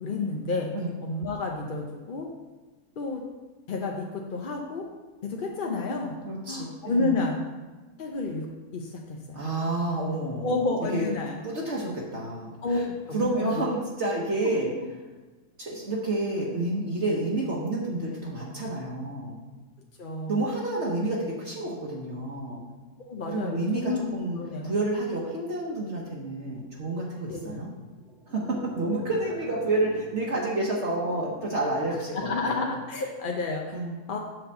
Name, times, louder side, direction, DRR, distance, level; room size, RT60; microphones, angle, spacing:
voice 1, 0.0-0.7 1.0-2.3 3.0-3.2 3.7-4.8 5.2-6.2 6.5-7.4 8.0-8.5 8.7-9.4 10.4-11.4 12.6-13.5 14.4-14.5 20.0-20.4 23.1-24.7 27.3-27.6 32.1-33.7 34.1-34.2, left 3 dB, 50° left, 0 dB, 0.6 m, -30 dB
voice 2, 6.3-7.3 9.3-10.6 10.9-11.1 11.4-12.8 13.1-14.7 15.6-19.4 20.3-22.6 23.2-24.4 24.6-27.7 28.3-32.6 33.7-34.0, right 2 dB, 50° right, -3 dB, 1.3 m, -29 dB
sound 1, 27.9-32.9, right 2 dB, 75° right, 1.6 m, -47 dB
7.6 x 3.9 x 6.7 m, 1.3 s
omnidirectional pair, 1.7 m